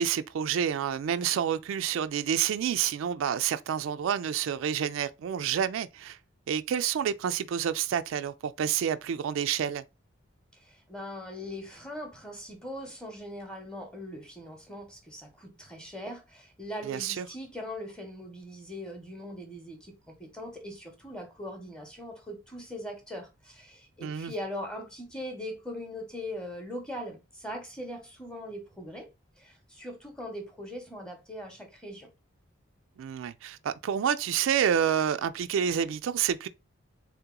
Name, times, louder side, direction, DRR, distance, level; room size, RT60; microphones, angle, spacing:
voice 1, 0.0-6.2 6.5-9.8 16.8-17.3 24.0-24.3 33.0-36.5, right 8 dB, 75° right, 0.3 m, -28 dB
voice 2, 10.6-29.1 29.4-32.1, equal, 5° left, 0.7 m, -40 dB
3.6 x 2.9 x 3.6 m
head